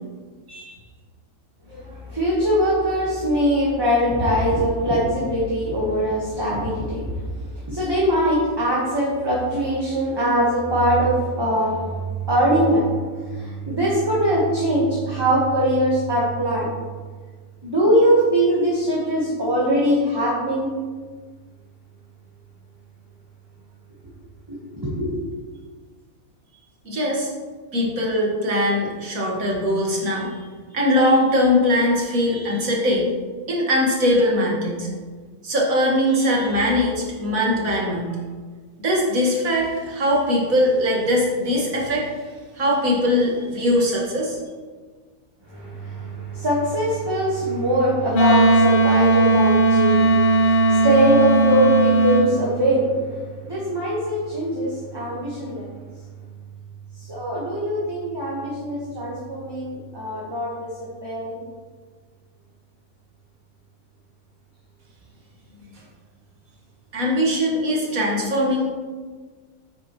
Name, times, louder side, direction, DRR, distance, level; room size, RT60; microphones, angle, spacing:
voice 1, 1.7-7.1 7.4-12.9 13.3-16.7 17.6-20.7 24.5-24.6 24.8-25.1 45.5-52.9 53.4-55.7 57.1-60.5 61.0-61.4, equal, 15° right, -6 dB, 1.4 m, -22 dB
voice 2, 26.8-27.3 27.7-30.4 30.7-33.1 33.5-35.0 35.4-38.2 38.8-42.1 42.5-44.4 66.9-68.6, left 1 dB, 70° right, -3 dB, 2.2 m, -21 dB
Wind instrument woodwind instrument, 48.1-52.3, right 2 dB, 40° left, 0.9 m, -17 dB
9.2 x 7.6 x 3.1 m, 1.5 s
omnidirectional pair, 1.5 m